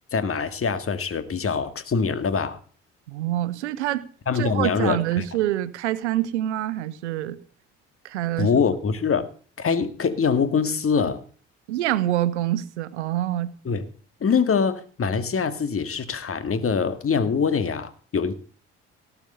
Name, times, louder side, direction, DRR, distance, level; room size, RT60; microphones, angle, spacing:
voice 1, 0.1-2.6 4.3-5.2 8.4-9.3 9.6-11.2 13.7-13.9 14.2-18.3, left 5 dB, 40° left, 2.1 m, -24 dB
voice 2, 3.1-4.1 4.3-7.4 8.0-8.5 11.7-13.5, right 13 dB, 85° right, 0.9 m, -26 dB
18.0 x 7.1 x 6.8 m
hypercardioid pair, 50°, 34 cm